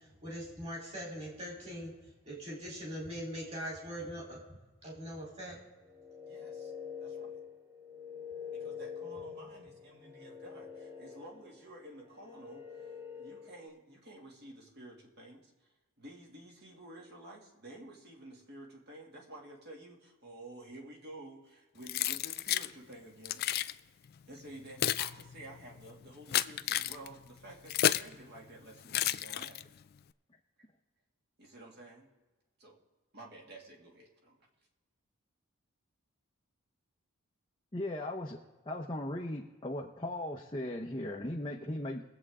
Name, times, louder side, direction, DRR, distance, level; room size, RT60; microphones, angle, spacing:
voice 1, 0.0-1.9 2.2-5.6, equal, 30° right, -1 dB, 3.7 m, -42 dB
sound 1, 5.8-13.7, left 7 dB, 10° right, 0.9 m, -46 dB
voice 2, 6.3-6.7 7.0-7.3 8.5-12.9 13.2-15.7 16.0-23.4 24.3-29.7 31.4-32.1 32.6-32.8 33.1-34.4, right 1 dB, 45° right, -1 dB, 2.3 m, -51 dB
Keys jangling, 21.9-22.7 23.2-23.7 24.4-28.1 28.9-29.8, left 12 dB, 45° left, 0.3 m, -32 dB
voice 3, 37.7-38.4 38.7-42.0, left 1 dB, 20° left, -1 dB, 0.8 m, -37 dB
22.5 x 8.0 x 3.7 m, 1.2 s
head